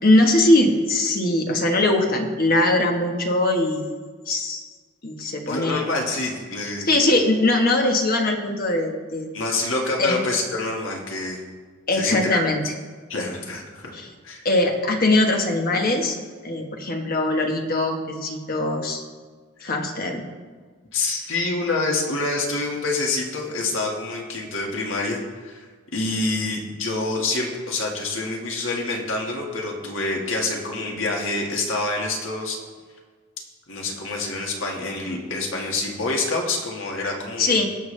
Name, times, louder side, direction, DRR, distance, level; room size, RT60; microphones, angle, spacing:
voice 1, 0.0-3.9 4.3-4.6 5.0-5.8 6.9-9.3 10.0-10.2 11.9-12.6 13.9-14.1 14.4-16.2 16.4-19.0 19.6-20.2 37.4-37.7, left 2 dB, 40° left, 2 dB, 1.3 m, -21 dB
voice 2, 5.4-6.9 9.3-11.4 11.9-12.4 13.1-13.9 14.2-14.5 19.6-19.7 20.9-25.7 25.9-32.6 33.7-37.6, left 2 dB, 60° left, 0 dB, 1.8 m, -27 dB
19.5 x 7.1 x 3.3 m, 1.5 s
head